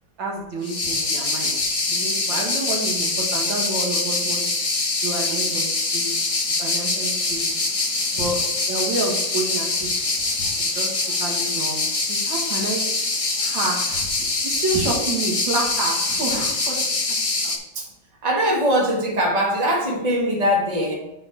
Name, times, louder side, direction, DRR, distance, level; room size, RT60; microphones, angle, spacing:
voice 1, 0.2-1.5 1.9-4.5 5.0-6.1 6.5-7.6 8.1-8.4 8.7-9.9 10.4-10.9 11.2-12.8 13.4-14.1 14.4-17.0 17.4-17.6, right 2 dB, 75° right, -2 dB, 2.4 m, -29 dB
sound 1, 0.6-17.6, left 3 dB, 45° left, 0.4 m, -24 dB
voice 2, 18.2-20.9, equal, 20° right, -2 dB, 1.6 m, -21 dB
6.5 x 4.3 x 6.0 m, 0.86 s
omnidirectional pair, 2.1 m